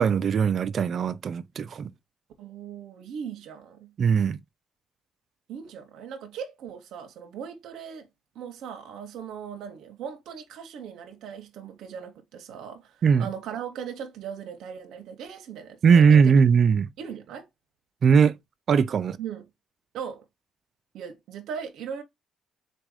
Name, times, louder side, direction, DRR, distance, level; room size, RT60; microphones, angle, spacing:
voice 1, 0.0-1.9 4.0-4.4 13.0-13.3 15.8-16.9 18.0-18.4 18.7-19.2, right 6 dB, 55° right, 0.3 m, -19 dB
voice 2, 2.4-3.9 5.5-8.1 8.3-16.4 17.0-17.5 19.2-19.5 19.9-20.2 20.9-22.0, right 7 dB, 85° right, 0.7 m, -39 dB
4.0 x 2.5 x 4.7 m
cardioid pair, 90°, 0 cm